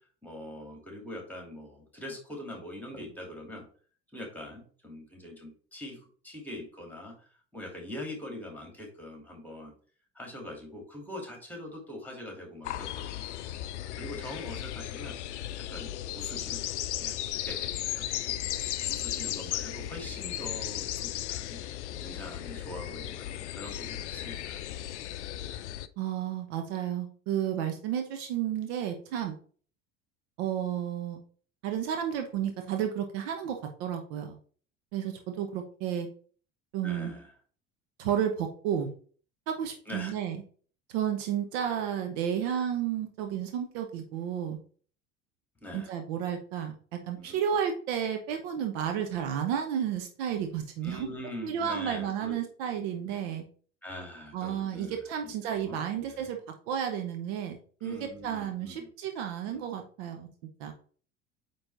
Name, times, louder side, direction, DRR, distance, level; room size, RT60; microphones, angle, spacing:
voice 1, 0.2-3.7 4.1-9.7 10.1-13.3 14.0-15.2 15.6-17.2 17.4-21.6 22.0-24.6 36.8-37.3 39.9-40.1 45.6-45.9 47.1-47.4 50.8-52.3 53.8-56.3 57.8-58.9 59.5-59.6, left 1 dB, 5° left, 1 dB, 2.6 m, -43 dB
sound 1, 12.6-25.9, left 13 dB, 65° left, 0.5 m, -36 dB
voice 2, 26.0-29.4 30.4-31.2 31.6-34.4 34.9-36.1 36.7-37.1 38.0-38.9 39.5-40.4 40.9-44.6 45.7-51.1 51.4-53.4 54.3-56.4 56.7-60.3 60.6-60.7, right 9 dB, 55° right, 5 dB, 1.0 m, -32 dB
8.8 x 3.2 x 4.1 m, 0.43 s
figure-of-eight pair, 65°, 37 cm